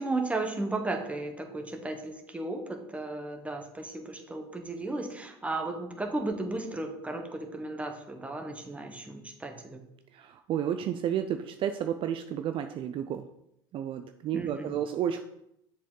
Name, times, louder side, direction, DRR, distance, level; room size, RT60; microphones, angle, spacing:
voice 1, 0.0-9.8 14.3-14.8, right 2 dB, 10° right, 4 dB, 1.1 m, -35 dB
voice 2, 10.1-13.3 13.7-15.2, right 9 dB, 45° right, 8 dB, 0.4 m, -31 dB
7.2 x 4.7 x 3.8 m, 0.79 s
hypercardioid pair, 90°, 12 cm